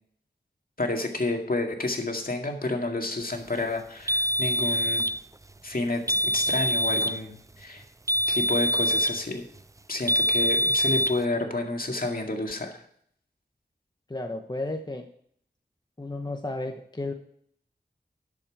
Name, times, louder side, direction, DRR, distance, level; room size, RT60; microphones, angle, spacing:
voice 1, 0.8-5.1 5.6-7.8 8.3-9.4 9.9-12.8, left 2 dB, 55° left, 2 dB, 2.1 m, -30 dB
sound 1, 4.1-5.2 6.1-7.2 8.1-9.2 10.1-11.2, equal, 20° right, 0.4 m, -24 dB
voice 2, 14.1-15.1 16.0-17.1, left 2 dB, 25° left, 4 dB, 0.9 m, -33 dB
11.0 x 7.3 x 4.8 m, 0.65 s
wide cardioid pair, 60°, 18 cm